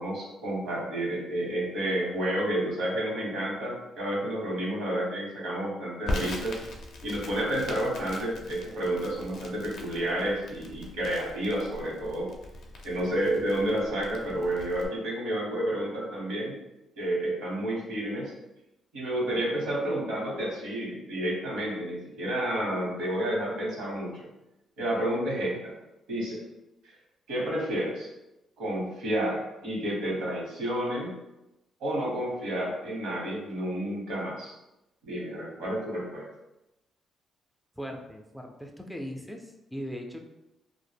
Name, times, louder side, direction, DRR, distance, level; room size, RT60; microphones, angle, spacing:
voice 1, 0.0-6.6 7.0-12.3 12.8-16.5 17.0-18.3 18.9-24.3 24.8-25.7 26.1-26.4 27.3-28.1 28.6-31.1 31.8-34.5 35.0-36.2, right 1 dB, 90° right, -3 dB, 0.9 m, -30 dB
Crackle, 6.1-14.9, left 2 dB, 75° left, 0.4 m, -40 dB
voice 2, 37.8-40.2, equal, ahead, 2 dB, 0.3 m, -39 dB
2.1 x 2.0 x 3.3 m, 0.93 s
cardioid pair, 90°, 0 cm